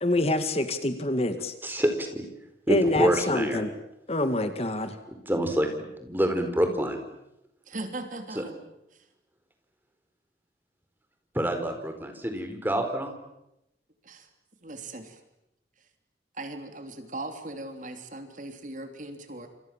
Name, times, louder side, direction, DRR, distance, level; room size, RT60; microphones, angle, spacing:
voice 1, 0.0-1.5 2.7-3.7 4.1-5.0, left 1 dB, 35° left, 8 dB, 2.2 m, -26 dB
voice 2, 1.6-2.2 2.7-3.6 5.1-5.7 6.0-7.0 8.3-8.4 11.3-13.1, right 1 dB, 10° right, 6 dB, 4.6 m, -26 dB
voice 3, 7.7-8.6 8.9-9.1 14.0-14.3 14.6-15.2 16.3-19.5, right 2 dB, 45° right, 7 dB, 3.2 m, -39 dB
28.5 x 27.5 x 7.5 m, 0.86 s
head